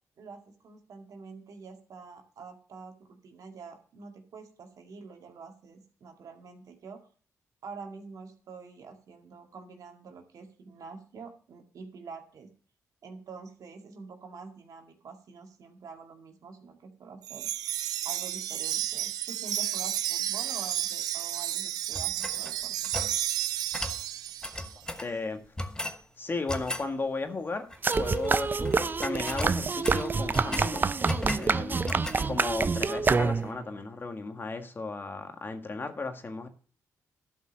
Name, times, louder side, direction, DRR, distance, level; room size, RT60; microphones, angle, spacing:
voice 1, 0.2-7.1 7.6-12.5 13.0-17.5 18.0-22.9, right 4 dB, 65° right, 4 dB, 1.9 m, -46 dB
Wind chime, 17.2-24.7, right 13 dB, 85° right, 0.4 m, -32 dB
sound 1, 21.9-23.2 23.7-24.0 24.4-25.1 25.6-26.0 26.5-26.9 27.7-28.3 28.6-28.8 29.0-30.7 31.1-31.5 31.8-32.3, left 1 dB, 10° left, 1.2 m, -35 dB
voice 2, 25.0-25.4 26.2-27.7 28.0-30.9 31.3-31.9 32.2-36.5, left 3 dB, 35° left, 6 dB, 1.7 m, -35 dB
sound 2, 27.8-33.7, right 4 dB, 30° right, 0.5 m, -27 dB
11.5 x 5.4 x 6.3 m, 0.42 s
cardioid pair, 70°, 6 cm